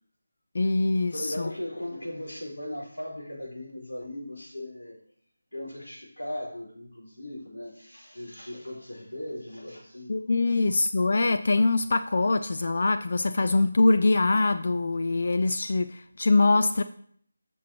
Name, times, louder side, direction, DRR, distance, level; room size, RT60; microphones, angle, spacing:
voice 1, 0.5-1.5 10.1-16.8, left 3 dB, 50° left, 9 dB, 0.4 m, -23 dB
voice 2, 1.1-5.0 5.5-10.2 10.4-10.6, left 1 dB, 70° left, -3 dB, 4.4 m, -38 dB
15.0 x 6.2 x 3.0 m, 0.62 s
figure-of-eight pair, 160°, 0 cm